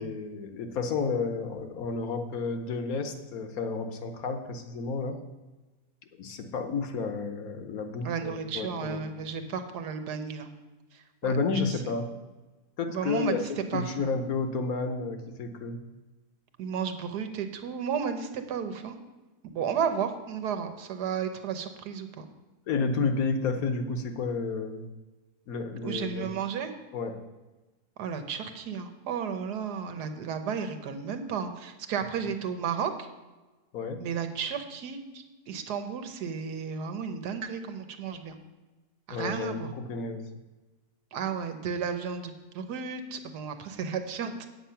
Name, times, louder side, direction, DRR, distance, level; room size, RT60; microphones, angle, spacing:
voice 1, 0.0-5.2 6.2-9.0 9.4-9.5 11.2-12.1 12.8-13.4 13.7-15.8 22.7-24.9 25.5-26.3 26.9-27.2 33.7-34.0 39.1-40.2, left 4 dB, 65° left, 6 dB, 1.3 m, -31 dB
voice 2, 8.0-10.5 11.2-11.7 12.9-13.3 13.7-14.1 16.6-19.0 19.5-22.2 25.8-26.7 28.0-32.9 34.0-38.4 39.1-39.7 41.1-44.3, right 7 dB, 85° right, 8 dB, 1.5 m, -33 dB
9.1 x 7.9 x 5.7 m, 1.2 s
omnidirectional pair, 1.7 m